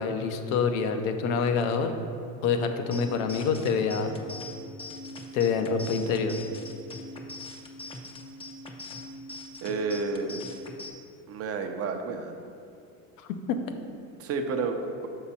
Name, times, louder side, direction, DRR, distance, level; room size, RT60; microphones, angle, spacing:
voice 1, 0.0-1.9 2.4-4.2 5.3-6.4 13.2-13.6, left 5 dB, 85° left, 6 dB, 0.8 m, -26 dB
sound 1, 2.9-10.9, left 1 dB, 15° left, 0.5 m, -42 dB
voice 2, 9.6-10.4 11.3-12.4 14.2-14.8, right 4 dB, 35° right, 5 dB, 0.6 m, -30 dB
5.9 x 5.7 x 4.2 m, 2.7 s
supercardioid pair, 120°, 40 cm